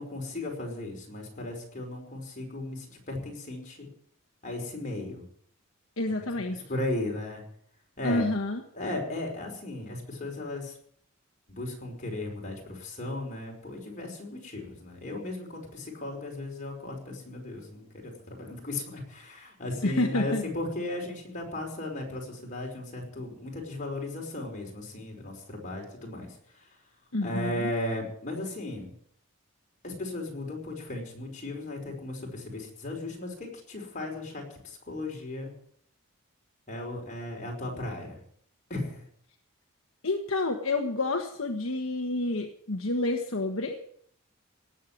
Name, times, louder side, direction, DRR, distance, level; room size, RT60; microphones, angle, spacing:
voice 1, 0.0-3.9 4.4-5.2 6.1-6.2 6.7-7.4 8.0-8.3 8.7-10.7 11.5-26.7 27.2-28.9 29.8-35.5 36.7-38.2 38.7-39.0, left 2 dB, 35° left, 0 dB, 5.0 m, -36 dB
voice 2, 6.0-6.6 8.0-8.6 19.8-20.4 27.1-27.7 40.0-43.8, left 2 dB, 65° left, 3 dB, 1.4 m, -29 dB
18.0 x 7.6 x 9.7 m, 0.65 s
head